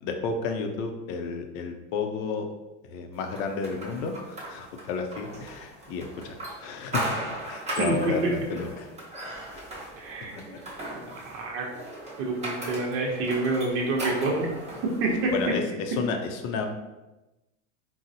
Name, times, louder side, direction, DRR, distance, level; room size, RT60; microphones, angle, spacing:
voice 1, 0.0-2.5 2.8-6.3 6.6-8.9 9.8-9.9 15.3-16.7, left 4 dB, 50° left, 5 dB, 0.5 m, -32 dB
sound 1, 3.3-15.6, right 1 dB, 20° right, 0.9 m, -38 dB
voice 2, 7.8-8.3 10.0-10.4 11.2-11.7 12.2-14.5 14.8-15.6, right 2 dB, 60° right, -1 dB, 0.8 m, -27 dB
3.9 x 2.0 x 2.7 m, 1.0 s
supercardioid pair, 140°, 37 cm